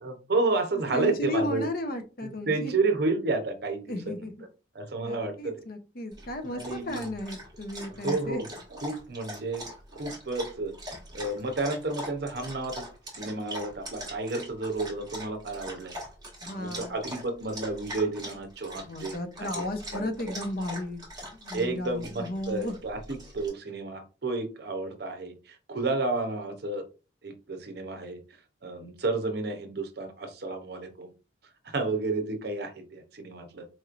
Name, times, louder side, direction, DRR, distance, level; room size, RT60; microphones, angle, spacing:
voice 1, 0.0-1.7 2.2-4.1 4.7-5.5 6.4-7.0 7.9-8.4 8.7-9.6 10.0-10.7 11.1-12.8 13.2-16.0 16.5-19.7 19.9-20.3 21.5-26.8 27.2-28.2 28.6-31.1 31.7-33.7, right 3 dB, 55° right, 6 dB, 0.7 m, -31 dB
voice 2, 0.9-2.7 3.9-4.3 5.0-8.4 16.4-17.0 18.8-21.0 21.4-22.8, left 1 dB, 50° left, 7 dB, 0.6 m, -34 dB
Dog, 6.1-23.5, equal, 20° right, 1.3 m, -42 dB
4.2 x 3.0 x 2.4 m, 0.32 s
head